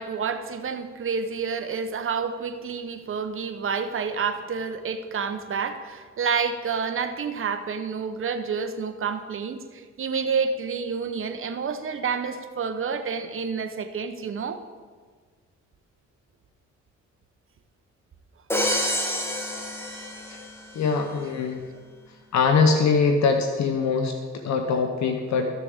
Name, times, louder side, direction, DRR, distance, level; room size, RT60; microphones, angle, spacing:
voice 1, 0.0-14.6, right 5 dB, 45° right, 8 dB, 0.9 m, -29 dB
Crash cymbal, 18.5-20.7, left 1 dB, 10° left, 1.4 m, -28 dB
voice 2, 20.7-21.6 22.3-24.1 24.4-25.5, left 5 dB, 65° left, 5 dB, 0.8 m, -22 dB
14.0 x 6.8 x 3.6 m, 1.5 s
cardioid pair, 90°, 30 cm